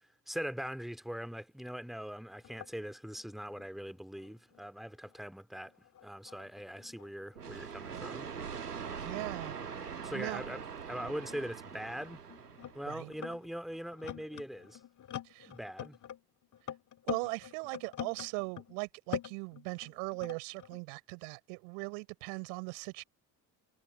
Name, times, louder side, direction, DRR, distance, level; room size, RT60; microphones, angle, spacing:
voice 1, 0.3-5.7 6.0-8.3 10.0-10.6 10.9-12.2 12.7-14.8 15.5-16.0, equal, ahead, 2.7 m, -41 dB
sound 1, 2.0-2.1 2.4-5.2 5.5-9.3 10.2-10.3 11.0-18.8 19.1-20.8, left 10 dB, 40° left, 1.9 m, -46 dB
sound 2, 7.4-13.1, right 6 dB, 85° right, 1.6 m, -43 dB
voice 2, 9.0-10.4 12.9-13.1 15.2-15.5 17.0-23.0, right 40 dB or more, 65° right, 4.8 m, -40 dB
figure-of-eight pair, 50°, 45 cm